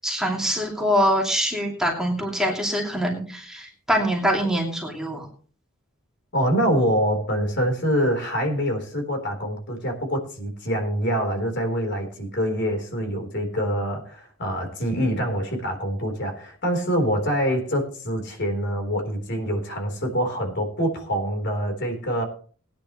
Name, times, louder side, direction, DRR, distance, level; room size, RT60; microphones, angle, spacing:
voice 1, 0.0-5.3, equal, 5° right, -1 dB, 2.8 m, -24 dB
voice 2, 6.3-22.2, equal, 55° left, 4 dB, 3.9 m, -25 dB
20.0 x 10.0 x 3.1 m, 0.42 s
head